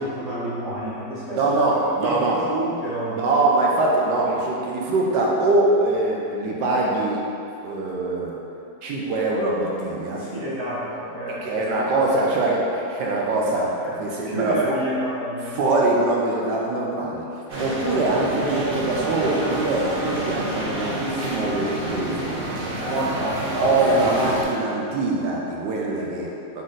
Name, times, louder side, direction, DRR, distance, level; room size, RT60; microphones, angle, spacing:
voice 1, 0.0-1.5 2.0-3.2 10.2-11.6 11.9-12.4 13.8-14.0 14.2-15.6 22.8-23.3, right 1 dB, 35° left, -13 dB, 0.7 m, -29 dB
voice 2, 1.4-2.4 3.1-7.2 7.6-8.4 8.8-10.2 11.3-14.7 15.5-17.3 17.6-22.5 22.8-22.9 23.6-26.6, right 2 dB, 85° right, -3 dB, 1.3 m, -23 dB
sound 1, 17.5-24.4, right 1 dB, 50° right, 0.6 m, -28 dB
4.1 x 3.1 x 3.8 m, 2.7 s
omnidirectional pair, 1.8 m